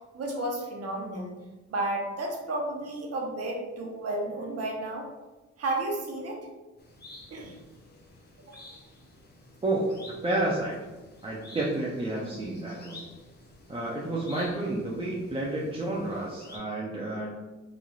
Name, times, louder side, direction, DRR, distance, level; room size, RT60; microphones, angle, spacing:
voice 1, 0.1-1.4 1.7-5.1 5.6-6.4 7.3-7.6 8.5-8.6, right 2 dB, 55° right, 0 dB, 0.8 m, -32 dB
sound 1, 6.8-16.6, left 2 dB, 35° left, 0.7 m, -51 dB
voice 2, 9.6-10.8 11.2-13.0 13.7-17.4, right 2 dB, 20° right, -4 dB, 0.4 m, -30 dB
3.1 x 2.4 x 2.3 m, 1.1 s
cardioid pair, 90°, 30 cm